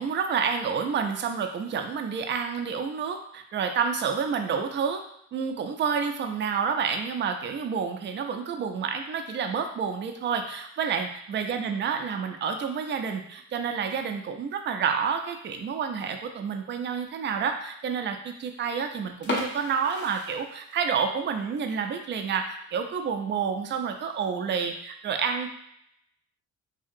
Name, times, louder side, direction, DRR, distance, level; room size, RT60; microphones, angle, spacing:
voice 1, 0.0-5.0 5.3-25.5, right 6 dB, 40° right, 5 dB, 0.4 m, -29 dB
sound 1, 19.2-21.1 21.4-21.5 22.0-22.2 22.6-22.7 23.0-23.1 23.8-24.1, left 2 dB, 35° left, 0.7 m, -34 dB
2.8 x 2.7 x 2.5 m, 0.74 s
cardioid pair, 90°, 30 cm